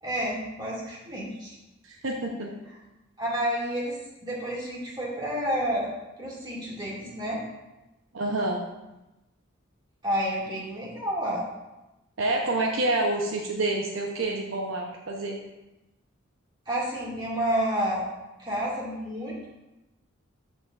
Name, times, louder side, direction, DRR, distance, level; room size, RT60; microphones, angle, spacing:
voice 1, 0.0-1.6 3.2-5.9 6.2-7.4 10.0-11.4 16.7-18.0 18.4-19.6, equal, 20° right, -6 dB, 2.3 m, -30 dB
voice 2, 1.8-2.5 8.1-8.6 12.2-15.4, right 2 dB, 75° right, 0 dB, 0.8 m, -28 dB
12.5 x 5.0 x 2.5 m, 0.99 s
head